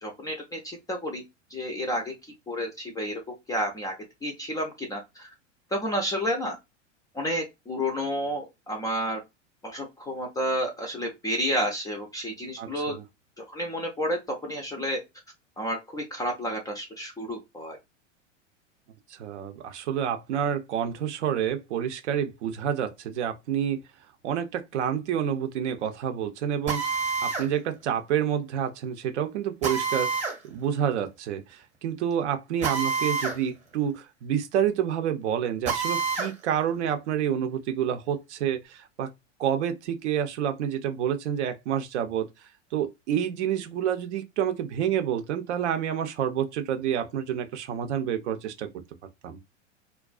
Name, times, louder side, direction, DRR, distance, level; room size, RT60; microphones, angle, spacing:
voice 1, 0.0-1.2 1.5-2.1 2.5-3.2 3.5-3.9 4.2-5.3 5.7-6.6 7.1-9.2 9.6-13.0 13.4-15.0 15.6-17.8, equal, 10° left, 0.4 m, -30 dB
voice 2, 12.6-13.0 19.1-23.8 24.2-39.1 39.4-42.3 42.7-48.7 49.2-49.4, right 9 dB, 65° right, 0.6 m, -28 dB
Drill, 26.7-27.5 29.6-30.4 32.6-33.4 33.7-33.8 35.6-36.3, right 5 dB, 20° right, 0.8 m, -28 dB
2.4 x 2.2 x 2.3 m
hypercardioid pair, 100°, 37 cm